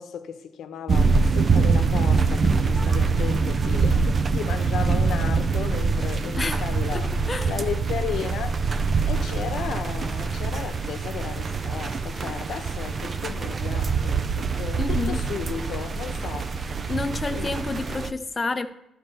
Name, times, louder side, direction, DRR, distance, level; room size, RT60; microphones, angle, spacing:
voice 1, 0.0-16.8 17.3-17.6, left 8 dB, 70° left, 0.9 m, -35 dB
sound 1, 0.9-18.1, right 4 dB, 40° right, 0.6 m, -24 dB
voice 2, 14.8-15.2 16.9-18.7, left 3 dB, 25° left, 0.7 m, -29 dB
12.5 x 4.3 x 6.8 m
cardioid pair, 90°, 0 cm